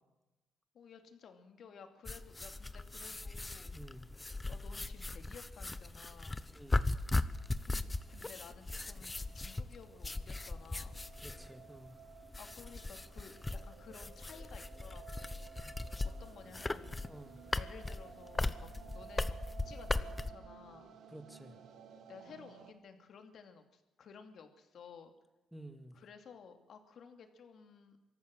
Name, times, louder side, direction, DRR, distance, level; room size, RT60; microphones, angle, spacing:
voice 1, 0.7-3.7 4.5-6.4 7.7-11.0 12.4-15.5 16.0-16.9 17.5-21.0 22.1-25.1 25.9-28.0, left 6 dB, 60° left, 6 dB, 2.7 m, -55 dB
sound 1, 2.0-20.3, left 2 dB, 15° left, 0.9 m, -38 dB
voice 2, 3.7-4.1 6.5-6.9 11.2-11.9 17.1-17.4 21.1-21.5 25.5-26.0, right 1 dB, 5° right, 8 dB, 1.9 m, -51 dB
sound 2, 7.2-22.7, right 7 dB, 75° right, 2.1 m, -56 dB
24.5 x 14.0 x 7.8 m, 1.1 s
cardioid pair, 120°, 0 cm